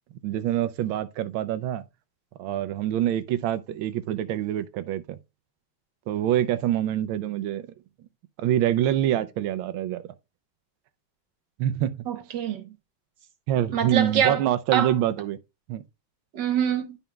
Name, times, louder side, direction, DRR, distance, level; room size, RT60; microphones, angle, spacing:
voice 1, 0.2-1.8 2.4-5.2 6.1-7.6 8.4-10.0 11.6-12.0 13.5-15.4 15.7-15.8, right 12 dB, 85° right, 1.4 m, -25 dB
voice 2, 12.1-12.7 13.7-14.4 14.7-14.9 16.3-17.0, right 8 dB, 65° right, 1.5 m, -25 dB
11.5 x 5.4 x 2.3 m
omnidirectional pair, 2.2 m